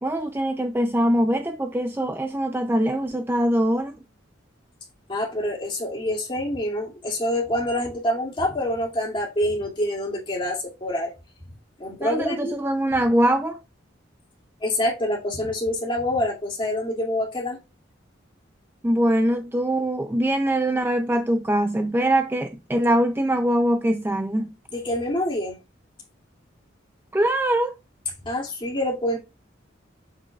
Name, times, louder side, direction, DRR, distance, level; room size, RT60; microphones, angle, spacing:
voice 1, 0.0-3.9 12.0-13.6 18.8-24.5 27.1-27.7, right 1 dB, 10° right, 0.4 m, -22 dB
voice 2, 5.1-11.1 11.8-12.5 14.6-17.6 24.7-25.6 28.2-29.2, left 1 dB, 25° left, 2.3 m, -26 dB
7.1 x 6.1 x 2.3 m
head